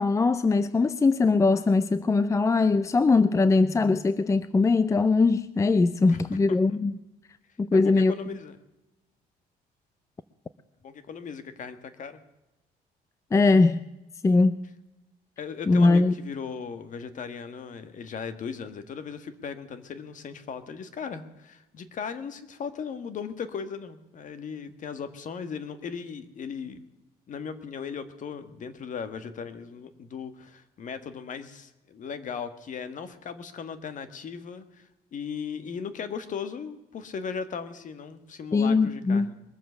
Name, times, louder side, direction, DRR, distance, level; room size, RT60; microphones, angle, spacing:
voice 1, 0.0-6.9 7.6-8.1 13.3-13.9 14.2-14.6 15.7-16.1 38.5-39.3, left 3 dB, 20° left, 0.5 m, -21 dB
voice 2, 7.7-8.6 10.8-12.2 15.4-26.8 27.3-39.4, left 6 dB, 50° left, 1.6 m, -37 dB
22.0 x 7.7 x 6.8 m
cardioid pair, 110°, 17 cm